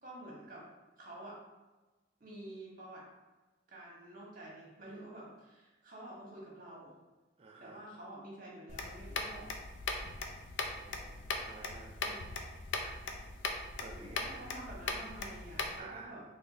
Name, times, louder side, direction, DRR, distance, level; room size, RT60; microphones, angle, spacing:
voice 1, 0.0-0.7 1.0-1.4 2.2-3.1 3.7-6.9 7.6-9.5 12.0-12.3 13.9-16.2, right 1 dB, 45° right, -5 dB, 1.1 m, -49 dB
voice 2, 7.4-7.8 10.7-11.9 12.8-12.9 13.8-14.4 15.8-16.2, right 3 dB, 30° right, 0 dB, 0.3 m, -51 dB
sound 1, 8.7-15.8, left 3 dB, 70° left, 0.4 m, -40 dB
3.5 x 3.3 x 2.6 m, 1.1 s
head